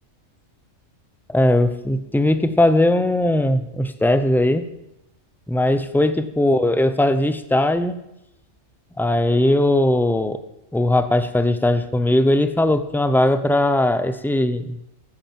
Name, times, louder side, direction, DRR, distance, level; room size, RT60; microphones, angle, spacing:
voice 1, 1.3-4.6 5.5-8.0 9.0-10.4 10.7-14.8, left 1 dB, ahead, 10 dB, 0.5 m, -19 dB
12.5 x 9.7 x 7.5 m, 0.88 s
omnidirectional pair, 1.4 m